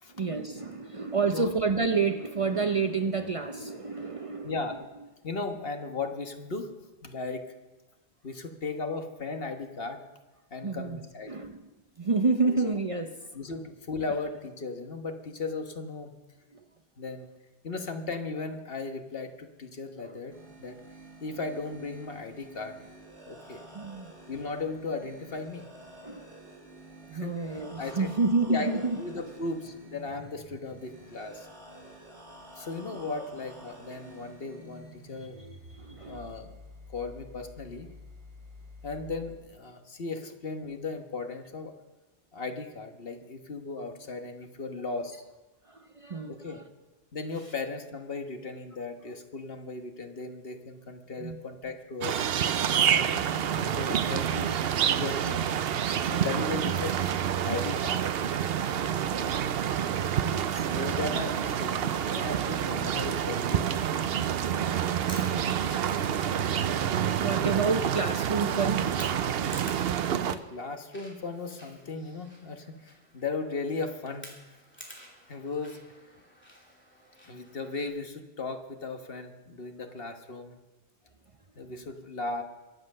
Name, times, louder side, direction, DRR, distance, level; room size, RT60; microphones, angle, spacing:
voice 1, 0.1-4.6 10.6-11.0 11.3-11.6 12.0-13.2 16.5-16.6 20.0-20.2 23.7-24.1 26.0-26.3 27.1-29.0 32.9-33.0 35.3-36.3 45.7-46.6 51.2-51.4 60.2-60.7 65.3-65.5 67.2-68.9, right 4 dB, 35° right, 6 dB, 0.7 m, -29 dB
voice 2, 4.4-4.8 5.2-6.7 7.0-7.5 8.2-10.0 10.5-11.4 12.5-12.7 13.3-16.1 17.0-17.3 17.6-20.8 21.2-22.8 23.3-23.6 24.3-25.7 27.1-28.1 28.5-31.5 32.6-35.4 35.9-36.5 36.9-37.9 38.8-41.7 42.3-45.2 46.3-46.6 47.1-52.2 52.9-53.2 53.6-54.5 54.9-55.5 56.1-57.0 57.4-58.1 60.7-63.9 70.3-74.3 75.3-75.8 77.2-80.6 81.5-82.4, left 3 dB, 60° left, 5 dB, 1.5 m, -36 dB
sound 1, 20.3-39.3, equal, 90° right, 3.9 m, -50 dB
sound 2, 52.0-70.4, right 9 dB, 65° right, 0.8 m, -28 dB
Chewing mastication, 64.8-77.9, equal, 10° left, 2.8 m, -51 dB
23.0 x 7.8 x 6.5 m, 1.1 s
omnidirectional pair, 1.1 m